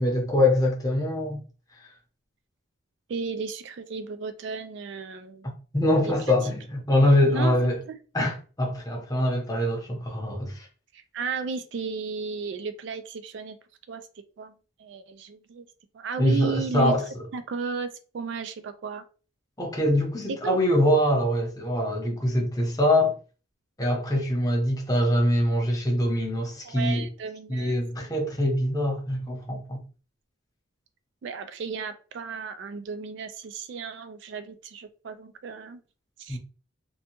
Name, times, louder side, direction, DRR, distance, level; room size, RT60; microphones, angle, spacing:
voice 1, 0.0-1.4 1.8-1.9 5.7-7.8 8.1-10.7 16.2-17.0 19.6-23.2 23.8-27.1 27.5-29.8 36.3-36.4, left 1 dB, 20° left, 0.7 m, -24 dB
voice 2, 3.1-5.5 6.0-6.1 7.3-7.7 10.9-13.6 13.9-14.0 14.4-14.5 14.8-15.7 15.9-16.9 17.3-19.0 20.4-20.6 26.6-27.8 31.2-35.8 36.2-36.4, right 5 dB, 60° right, 0.3 m, -34 dB
2.7 x 2.2 x 2.8 m
head